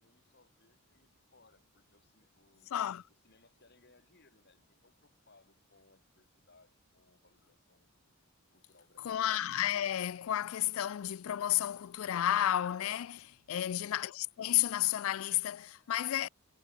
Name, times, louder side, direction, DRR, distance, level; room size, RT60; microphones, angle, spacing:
voice 1, 0.0-2.8 3.1-8.0 8.5-9.3, left 3 dB, 45° left, 3.2 m, -67 dB
voice 2, 2.7-3.0 9.0-16.3, left 12 dB, 65° left, 0.3 m, -32 dB
head